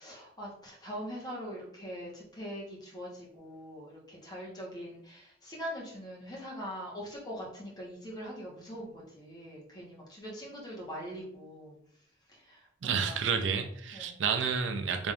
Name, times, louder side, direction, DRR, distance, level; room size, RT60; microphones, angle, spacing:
voice 1, 0.0-11.8 12.3-13.2 13.9-14.2, equal, 20° left, -3 dB, 1.1 m, -42 dB
voice 2, 12.8-15.1, right 6 dB, 85° right, 7 dB, 0.5 m, -30 dB
3.5 x 2.6 x 3.4 m, 0.65 s
head